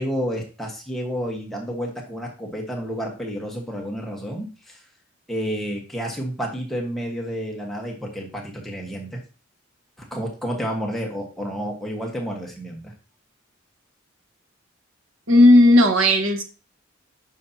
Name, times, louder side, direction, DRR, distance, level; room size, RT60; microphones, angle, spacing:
voice 1, 0.0-4.8 5.3-9.2 10.1-12.9, equal, ahead, -1 dB, 1.4 m, -30 dB
voice 2, 15.3-16.4, left 1 dB, 75° right, 5 dB, 1.3 m, -14 dB
9.5 x 5.7 x 2.9 m, 0.34 s
head